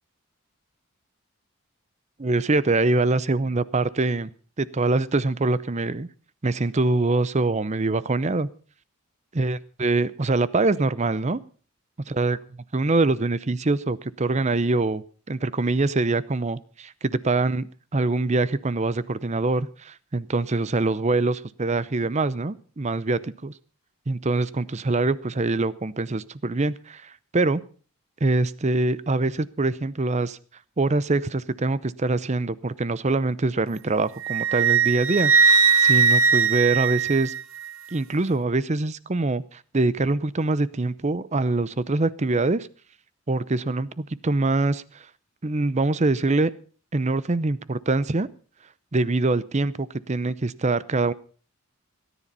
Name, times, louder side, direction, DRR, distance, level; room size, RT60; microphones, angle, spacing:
voice 1, 2.2-4.3 4.6-6.1 6.4-8.5 9.3-11.4 12.1-12.4 12.7-17.7 17.9-23.5 24.1-27.6 28.2-30.4 30.8-37.3 37.9-42.7 43.3-45.1 45.4-46.5 46.9-48.3 48.9-51.1, right 3 dB, 30° right, 18 dB, 0.6 m, -24 dB
Wind instrument woodwind instrument, 34.2-37.7, right 5 dB, 70° right, 0.9 m, -19 dB
18.0 x 10.0 x 5.4 m, 0.40 s
head